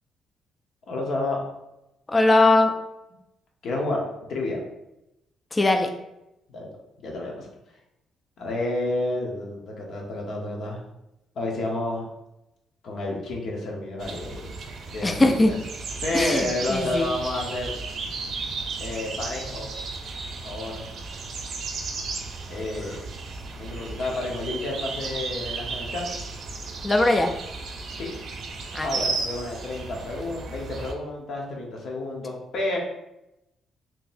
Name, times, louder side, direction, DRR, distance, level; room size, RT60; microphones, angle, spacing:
voice 1, 0.9-1.4 3.6-4.0 4.3-4.6 6.5-6.7 7.0-7.5 8.4-10.8 11.3-12.1 12.8-14.5 14.9-15.6 16.0-17.7 18.8-19.7 20.4-20.9 22.5-23.0 23.6-26.1 27.9-28.1 28.8-32.8, left 2 dB, 65° left, -1 dB, 0.9 m, -30 dB
voice 2, 2.1-2.7 5.5-5.9 15.0-15.5 16.1-17.1 26.8-27.3 28.7-28.9, left 2 dB, 20° left, 4 dB, 0.3 m, -20 dB
sound 1, 14.0-30.9, right 4 dB, 65° right, 0.5 m, -34 dB
3.8 x 2.8 x 2.6 m, 0.89 s
cardioid pair, 90°, 0 cm